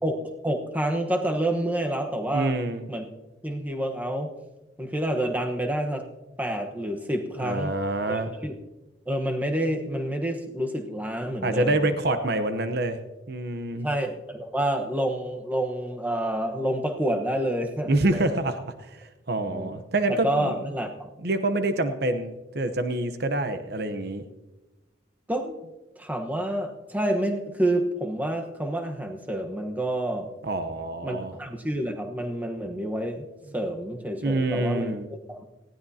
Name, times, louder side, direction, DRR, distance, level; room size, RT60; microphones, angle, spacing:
voice 1, 0.0-2.6 2.9-3.0 3.4-4.3 4.8-6.0 6.4-7.8 8.1-8.6 9.1-11.9 13.8-18.2 19.4-19.7 20.1-21.1 25.3-25.6 26.0-30.3 31.0-33.2 33.5-35.5, right 1 dB, 10° right, 3 dB, 1.1 m, -28 dB
voice 2, 2.3-2.9 7.4-8.4 11.4-13.0 13.3-13.9 17.9-20.6 21.2-24.2 30.4-31.3 34.2-35.1, right 2 dB, 55° right, 9 dB, 0.9 m, -26 dB
19.5 x 15.5 x 2.8 m, 1.1 s
head